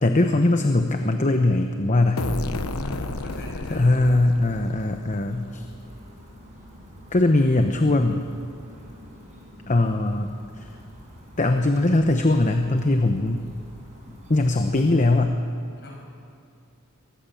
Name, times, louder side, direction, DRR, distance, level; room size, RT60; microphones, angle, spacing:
voice 1, 0.0-2.3 3.7-5.7 7.1-8.2 9.7-10.3 10.6-10.7 11.4-13.5 14.3-15.4, left 2 dB, 35° left, 5 dB, 0.9 m, -21 dB
sound 1, 2.2-5.8, left 2 dB, 70° left, 1.0 m, -32 dB
voice 2, 2.4-4.1 15.8-16.0, left 1 dB, 50° left, -1 dB, 6.8 m, -40 dB
sound 2, 3.3-15.2, equal, 30° right, 7.0 m, -46 dB
23.0 x 19.0 x 7.1 m, 2.3 s
head